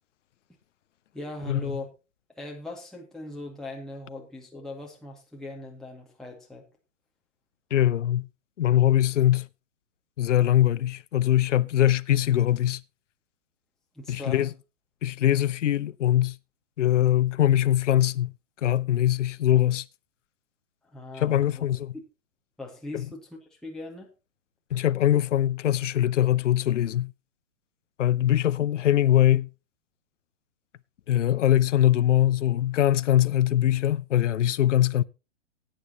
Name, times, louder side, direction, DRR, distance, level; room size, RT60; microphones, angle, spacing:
voice 1, 1.1-1.9 2.4-6.6 13.9-14.5 20.8-21.7 21.9-22.0 22.6-24.1, left 2 dB, ahead, 2.1 m, -39 dB
voice 2, 7.7-8.3 8.6-9.5 10.2-12.8 14.1-14.5 15.0-16.4 16.8-18.3 18.6-19.9 21.2-21.9 22.9-23.1 24.7-27.1 28.0-29.5 31.1-35.0, left 12 dB, 75° left, 0.7 m, -22 dB
17.0 x 9.2 x 2.9 m
hypercardioid pair, 120°, 37 cm